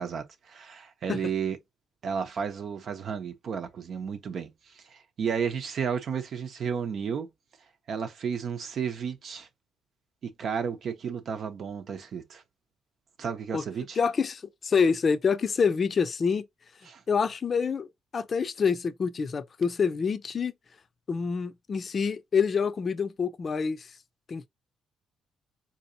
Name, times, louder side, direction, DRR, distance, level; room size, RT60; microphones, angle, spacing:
voice 1, 0.0-1.6 2.0-7.3 7.9-9.5 10.2-12.4 13.2-14.0 16.9-17.0, right 6 dB, 60° right, 0.8 m, -33 dB
voice 2, 14.0-16.5 17.1-17.9 18.1-20.5 21.1-23.9 24.3-24.5, left 5 dB, 45° left, 0.5 m, -26 dB
4.0 x 2.9 x 2.7 m
cardioid pair, 90°, 0 cm